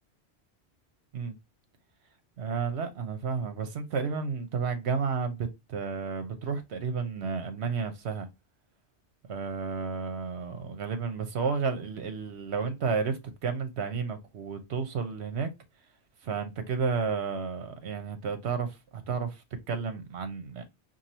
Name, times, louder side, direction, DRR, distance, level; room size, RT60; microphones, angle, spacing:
voice 1, 2.4-8.3 9.3-15.5 16.2-20.6, right 5 dB, 75° right, 1.1 m, -32 dB
4.6 x 2.7 x 2.8 m
omnidirectional pair, 1.1 m